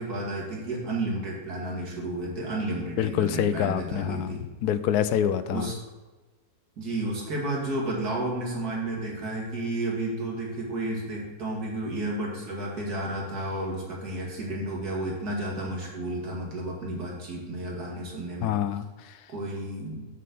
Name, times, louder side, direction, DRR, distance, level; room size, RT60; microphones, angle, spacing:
voice 1, 0.0-4.4 5.5-5.8 6.8-18.6 19.3-20.1, right 1 dB, 75° right, -2 dB, 2.6 m, -32 dB
voice 2, 3.0-4.4 4.6-5.7 18.4-19.2, left 10 dB, 80° left, 13 dB, 1.1 m, -26 dB
7.5 x 5.5 x 6.9 m, 1.2 s
omnidirectional pair, 1.6 m